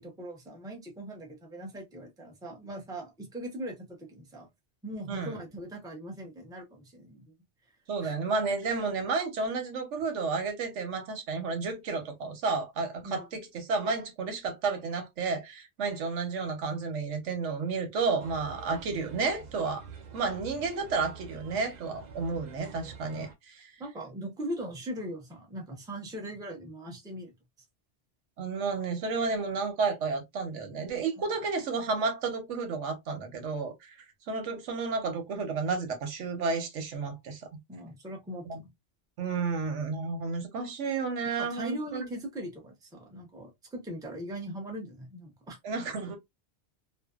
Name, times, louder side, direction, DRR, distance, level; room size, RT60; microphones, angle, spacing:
voice 1, 0.0-4.5 4.8-7.3 8.0-8.1 13.0-13.3 23.8-27.3 31.2-31.3 37.7-38.7 41.5-45.6, right 1 dB, 5° right, 0.5 m, -40 dB
voice 2, 5.1-5.4 7.9-19.8 20.1-23.7 28.4-34.0 34.3-37.4 38.5-38.6 39.2-42.1 45.6-46.2, right 4 dB, 90° right, 1.1 m, -31 dB
sound 1, 18.2-23.3, right 5 dB, 55° right, 0.5 m, -47 dB
2.6 x 2.2 x 2.3 m
omnidirectional pair, 1.2 m